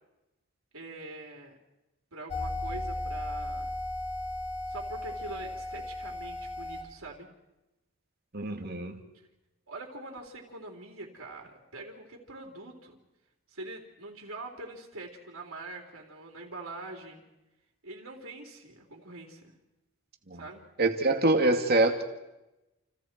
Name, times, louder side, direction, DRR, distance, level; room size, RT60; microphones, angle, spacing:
voice 1, 0.7-1.6 2.1-3.7 4.7-7.3 9.7-13.0 13.5-17.2 17.8-19.5 20.3-20.6, right 2 dB, 70° right, 1 dB, 3.9 m, -44 dB
sound 1, 2.3-6.8, left 1 dB, 30° left, 6.8 m, -35 dB
voice 2, 8.3-9.0 20.3-20.4 20.8-22.0, right 2 dB, 45° right, 5 dB, 2.5 m, -25 dB
30.0 x 29.5 x 4.6 m, 0.98 s
head